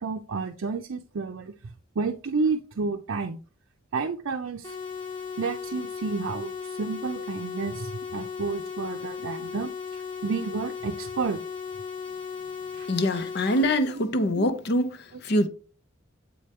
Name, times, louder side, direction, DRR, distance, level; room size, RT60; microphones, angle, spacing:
voice 1, 0.0-1.5 2.0-3.4 3.9-4.8 5.4-11.4 12.7-12.9 13.9-14.0, right 4 dB, 70° right, 0.5 m, -31 dB
sound 1, 4.6-13.6, left 6 dB, 25° left, 1.1 m, -36 dB
voice 2, 12.9-15.5, left 1 dB, 55° left, 0.7 m, -24 dB
7.8 x 4.3 x 3.4 m
head